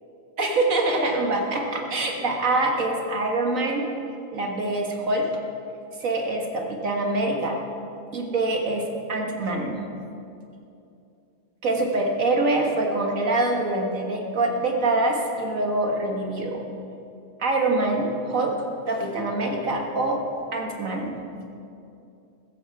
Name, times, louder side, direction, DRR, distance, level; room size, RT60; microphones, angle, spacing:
voice 1, 0.4-3.9 4.3-5.3 6.0-7.6 8.1-9.8 11.6-16.6 17.4-18.5 18.9-20.2 20.5-21.2, right 2 dB, 60° right, 1 dB, 1.9 m, -25 dB
15.0 x 14.0 x 4.7 m, 2.7 s
omnidirectional pair, 1.6 m